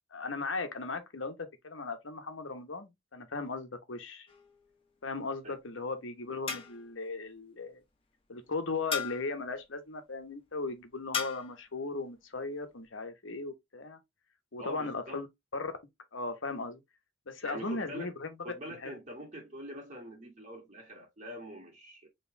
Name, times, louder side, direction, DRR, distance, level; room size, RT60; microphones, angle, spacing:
voice 1, 0.1-4.3 5.0-7.8 8.3-14.0 14.5-15.3 15.5-15.7 16.1-16.8 17.3-18.4 18.8-19.0, left 3 dB, 75° left, 1.1 m, -37 dB
sound 1, 4.3-4.8 6.5-7.0 8.9-9.4 11.1-11.6, left 6 dB, 30° left, 1.1 m, -37 dB
voice 2, 14.6-15.2 17.4-18.1 18.4-22.1, equal, 40° right, 1.9 m, -44 dB
4.6 x 3.2 x 3.3 m
head